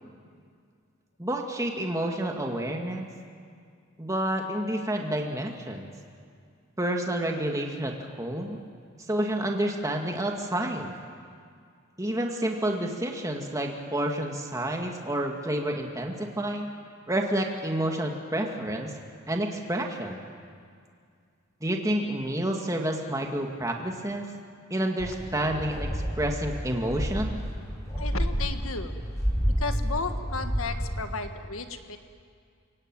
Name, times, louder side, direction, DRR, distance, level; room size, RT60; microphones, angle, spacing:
voice 1, 1.2-3.1 4.0-5.9 6.8-8.6 9.1-10.9 12.0-16.7 17.1-18.9 19.3-20.2 21.6-24.3 24.7-27.4, right 1 dB, 15° right, 2 dB, 2.1 m, -29 dB
sound 1, 25.0-31.0, equal, 15° left, 4.7 m, -30 dB
voice 2, 28.0-28.9 29.6-32.0, left 4 dB, 85° left, 7 dB, 1.7 m, -34 dB
30.0 x 17.5 x 9.1 m, 2.2 s
head